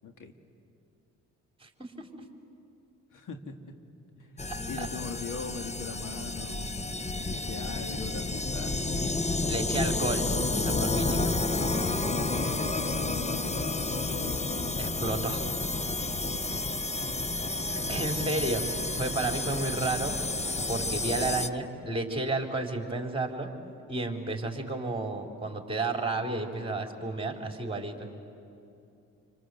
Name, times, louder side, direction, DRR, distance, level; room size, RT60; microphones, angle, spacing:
voice 1, 0.0-0.3 3.1-3.7 4.2-6.8 7.2-9.2 12.1-14.4 16.0-16.6, left 5 dB, 60° left, 5 dB, 2.2 m, -42 dB
voice 2, 1.6-2.1 4.8-4.9 9.5-11.4 14.8-15.5 17.6-20.2 20.7-23.5 23.9-28.1, right 2 dB, 15° right, 2 dB, 4.4 m, -32 dB
sound 1, 4.4-21.5, left 2 dB, 20° left, 1.1 m, -30 dB
28.5 x 25.0 x 8.1 m, 2.6 s
supercardioid pair, 60°, 35 cm